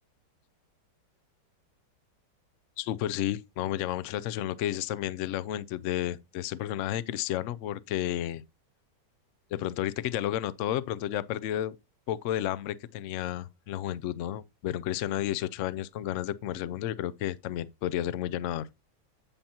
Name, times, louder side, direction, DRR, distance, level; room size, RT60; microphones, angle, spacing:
voice 1, 2.8-8.4 9.5-11.7 12.1-18.7, left 12 dB, 90° left, 0.6 m, -32 dB
8.7 x 7.2 x 2.9 m
omnidirectional pair, 1.9 m